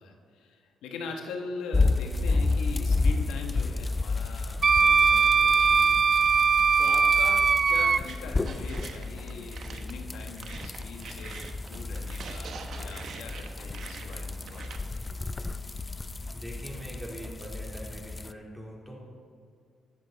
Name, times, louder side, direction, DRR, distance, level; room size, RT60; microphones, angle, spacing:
voice 1, 0.0-6.2 6.8-15.1, left 4 dB, 90° left, 3 dB, 1.2 m, -41 dB
sound 1, 1.7-18.3, left 3 dB, 20° left, 0.4 m, -32 dB
Wind instrument woodwind instrument, 4.6-8.0, right 5 dB, 40° right, 0.3 m, -21 dB
sound 2, 8.1-14.8, right 5 dB, 60° right, 1.1 m, -44 dB
voice 2, 16.3-19.0, equal, ahead, -3 dB, 3.3 m, -42 dB
20.0 x 7.6 x 4.0 m, 2.3 s
cardioid pair, 90°, 0 cm